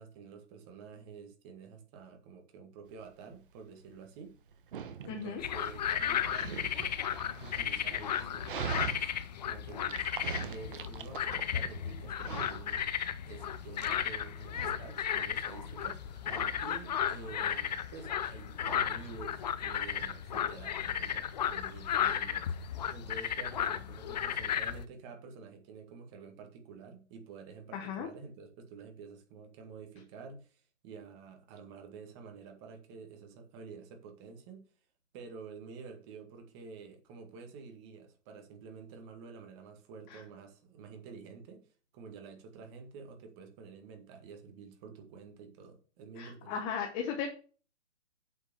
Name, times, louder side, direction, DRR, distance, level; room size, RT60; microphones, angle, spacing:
voice 1, 0.0-4.3 5.0-6.7 7.4-9.1 9.4-12.9 13.3-34.6 35.1-41.6 41.9-46.6, right 5 dB, 25° right, 1.9 m, -49 dB
Dog, 2.9-22.1, right 7 dB, 45° right, 1.3 m, -45 dB
voice 2, 5.1-5.4 27.7-28.1 40.1-40.2 46.2-47.3, left 7 dB, 20° left, 1.1 m, -36 dB
sound 1, 5.4-24.8, left 9 dB, 35° left, 0.7 m, -34 dB
8.5 x 5.0 x 6.9 m
hypercardioid pair, 155°, 36 cm